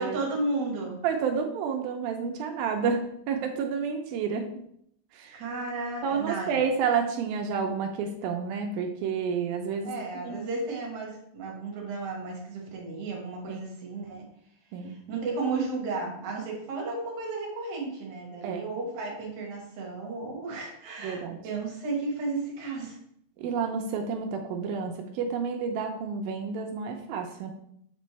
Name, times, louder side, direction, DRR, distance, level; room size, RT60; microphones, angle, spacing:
voice 1, 0.0-1.0 5.3-6.6 9.8-14.3 14.8-23.0, right 3 dB, 60° right, -1 dB, 2.2 m, -33 dB
voice 2, 1.0-4.5 5.1-5.4 6.0-9.9 10.2-10.4 13.5-13.6 14.7-15.0 18.4-18.6 21.0-21.4 23.4-27.5, right 6 dB, 80° right, 4 dB, 2.2 m, -30 dB
7.4 x 4.3 x 3.2 m, 0.71 s
omnidirectional pair, 4.7 m